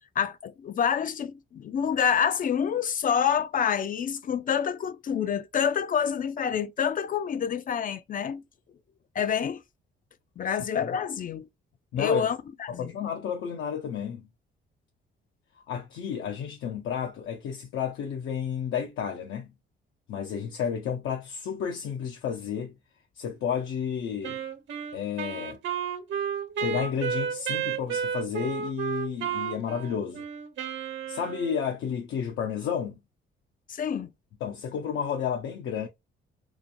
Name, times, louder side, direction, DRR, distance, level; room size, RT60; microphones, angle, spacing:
voice 1, 0.2-8.4 9.2-9.6 10.4-11.5 12.0-12.9 33.7-34.1, left 7 dB, 45° left, 0.4 m, -27 dB
voice 2, 11.9-12.3 12.7-14.3 15.7-19.5 20.1-22.7 23.2-24.4 24.9-25.6 26.6-30.2 31.1-33.0 34.4-35.9, left 7 dB, 80° left, 0.7 m, -31 dB
Wind instrument woodwind instrument, 24.2-31.7, right 7 dB, 70° right, 1.0 m, -32 dB
3.1 x 2.1 x 2.5 m
cardioid pair, 90°, 20 cm